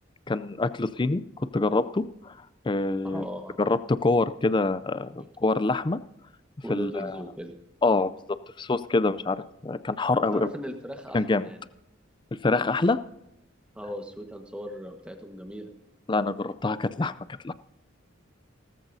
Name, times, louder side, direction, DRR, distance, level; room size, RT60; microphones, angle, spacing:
voice 1, 0.3-2.3 2.7-3.2 3.6-6.0 6.7-7.1 7.8-8.1 8.6-10.5 11.1-11.5 12.4-13.0 16.1-17.1 17.4-17.5, left 3 dB, 25° left, 15 dB, 0.4 m, -25 dB
voice 2, 3.0-3.6 6.6-7.5 10.3-11.6 13.7-15.7, equal, 5° right, 4 dB, 1.4 m, -37 dB
18.0 x 14.0 x 2.7 m, 0.88 s
head